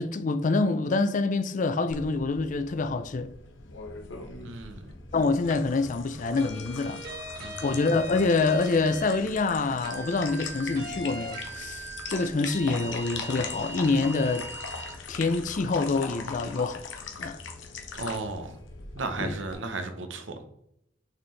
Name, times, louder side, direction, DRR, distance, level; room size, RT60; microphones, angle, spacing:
voice 1, 0.0-3.3 5.1-7.0 7.6-14.5 15.1-16.9 17.2-17.4 19.2-19.4, left 3 dB, 40° left, 0.4 m, -26 dB
sound 1, 1.9-19.5, left 4 dB, 85° left, 1.0 m, -41 dB
voice 2, 4.4-4.9 7.4-7.8 17.9-18.6 18.9-20.4, right 3 dB, 75° right, 0.9 m, -35 dB
sound 2, 6.4-9.2 9.8-15.0, right 2 dB, 55° right, 1.9 m, -40 dB
6.9 x 4.4 x 3.2 m
head